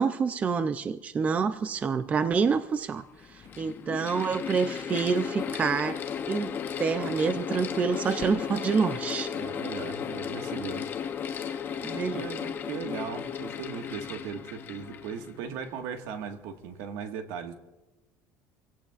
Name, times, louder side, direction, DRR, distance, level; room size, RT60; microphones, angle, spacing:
voice 1, 0.0-3.0 3.3-6.0 6.3-9.3 11.8-12.2, right 5 dB, 20° right, 11 dB, 0.4 m, -27 dB
Mechanical fan, 2.2-2.3 3.1-15.8, left 7 dB, 30° left, 0.9 m, -35 dB
voice 2, 9.3-10.9 11.3-11.7 12.1-17.5, right 7 dB, 75° right, 5 dB, 1.6 m, -38 dB
26.0 x 17.0 x 2.5 m, 1.1 s
cardioid pair, 165°, 7 cm